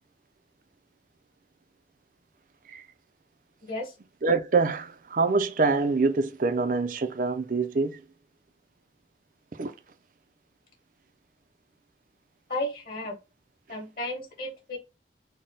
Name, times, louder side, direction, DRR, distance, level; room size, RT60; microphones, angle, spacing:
voice 1, 3.6-3.9 12.5-13.2 13.7-14.8, left 1 dB, 55° left, 1.5 m, -33 dB
voice 2, 4.2-8.0 9.6-9.7, right 4 dB, 50° right, 0.5 m, -25 dB
4.1 x 2.2 x 3.8 m
head